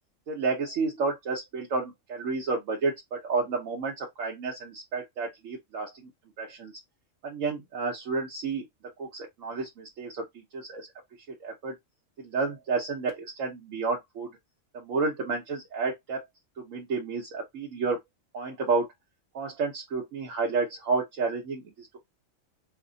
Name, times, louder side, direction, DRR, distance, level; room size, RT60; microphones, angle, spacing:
voice 1, 0.3-6.1 6.4-6.7 7.2-8.6 9.0-10.9 11.4-11.7 12.2-14.4 14.7-16.2 16.6-18.0 18.3-18.9 19.3-22.0, right 4 dB, 75° right, 1.2 m, -31 dB
3.4 x 2.1 x 3.8 m
omnidirectional pair, 1.3 m